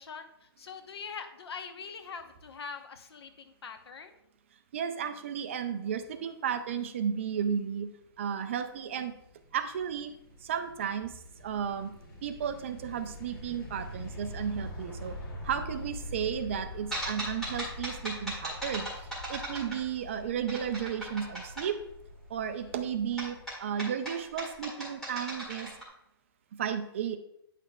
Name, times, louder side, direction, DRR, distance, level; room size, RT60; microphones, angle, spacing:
voice 1, 0.0-4.2 22.6-22.7, left 5 dB, 75° left, 8 dB, 0.9 m, -43 dB
voice 2, 4.7-7.9 8.2-9.1 9.5-10.1 10.4-11.1 11.4-11.9 12.2-15.1 15.4-18.9 19.3-21.8 22.3-25.7 26.6-27.2, right 8 dB, 30° right, 9 dB, 0.4 m, -33 dB
sound 1, 8.0-23.5, left 1 dB, 60° left, 2.7 m, -45 dB
sound 2, 16.9-20.1 20.5-21.7 23.2-25.8, right 1 dB, 5° left, 1.9 m, -37 dB
9.2 x 5.7 x 2.3 m, 0.77 s
hypercardioid pair, 170°, 13 cm